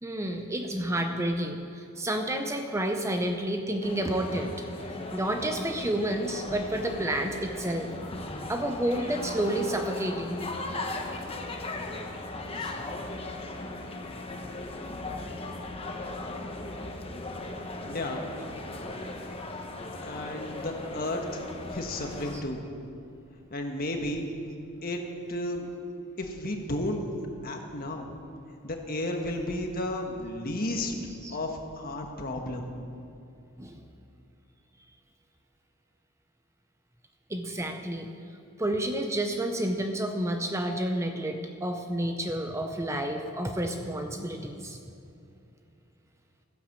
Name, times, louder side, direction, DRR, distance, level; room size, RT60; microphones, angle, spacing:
voice 1, 0.0-4.5 5.1-7.9 8.5-10.4 22.3-22.4 31.2-31.4 33.6-33.7 37.3-38.1 38.6-44.8, right 1 dB, 15° right, 5 dB, 0.6 m, -30 dB
sound 1, 3.8-22.4, left 2 dB, 25° left, 1.1 m, -38 dB
voice 2, 17.8-18.3 20.0-22.6 23.5-24.3 24.8-25.7 26.2-27.1 27.4-28.1 28.6-30.9 31.3-32.7, left 1 dB, 40° left, 3 dB, 1.5 m, -33 dB
14.5 x 10.0 x 7.3 m, 2.7 s
head